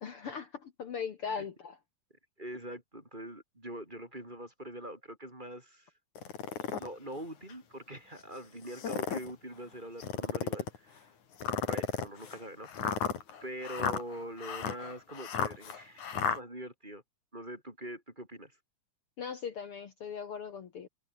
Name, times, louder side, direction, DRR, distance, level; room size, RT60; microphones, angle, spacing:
voice 1, 0.0-1.8 19.2-20.9, left 6 dB, 55° left, 2.3 m, -39 dB
voice 2, 2.4-5.9 6.8-11.1 11.7-13.1 13.4-17.0 17.3-18.5, right 1 dB, 15° right, 4.8 m, -44 dB
sound 1, 6.2-6.9 7.5-7.6 8.6-9.3 10.0-10.8 11.4-16.4, left 7 dB, 85° left, 4.3 m, -34 dB
omnidirectional pair, 3.3 m